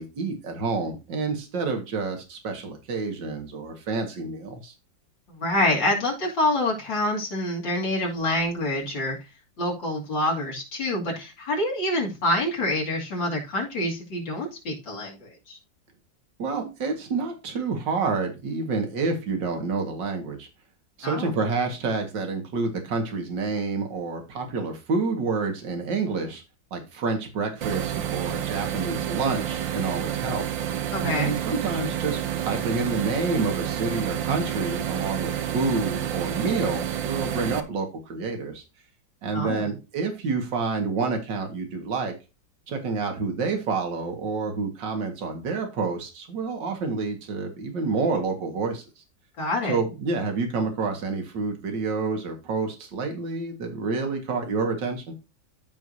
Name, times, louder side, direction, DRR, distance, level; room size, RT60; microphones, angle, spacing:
voice 1, 0.0-4.7 16.4-20.5 21.0-26.4 26.7-30.5 31.0-38.6 39.2-42.1 42.7-49.0 49.7-55.1, right 4 dB, 75° right, 4 dB, 2.5 m, -28 dB
voice 2, 5.3-9.2 9.6-15.6 21.0-21.3 30.9-31.3 39.3-39.7 49.4-49.8, left 1 dB, 85° left, -4 dB, 3.6 m, -26 dB
sound 1, 27.6-37.6, right 10 dB, 90° right, 1.7 m, -29 dB
14.0 x 4.8 x 2.8 m, 0.28 s
omnidirectional pair, 2.0 m